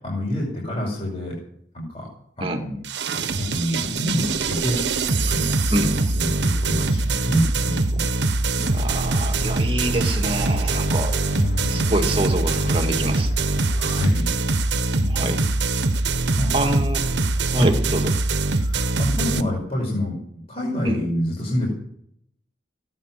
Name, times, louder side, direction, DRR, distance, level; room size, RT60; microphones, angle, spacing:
voice 1, 0.0-1.3 1.7-2.1 2.4-2.8 3.1-8.0 11.3-11.9 13.8-14.3 15.0-15.4 16.0-16.5 17.5-17.7 18.6-20.2 20.5-21.7, left 1 dB, 35° left, -3 dB, 5.4 m, -27 dB
sound 1, 2.8-19.4, right 3 dB, 75° right, 1.1 m, -23 dB
voice 2, 8.5-11.2 11.7-13.3 15.1-15.4 16.5-17.1 17.5-18.1 20.8-21.0, right 1 dB, 30° right, 4 dB, 2.2 m, -26 dB
sound 2, 8.6-14.0, left 1 dB, 60° left, 1.0 m, -35 dB
17.0 x 9.9 x 7.6 m, 0.69 s
head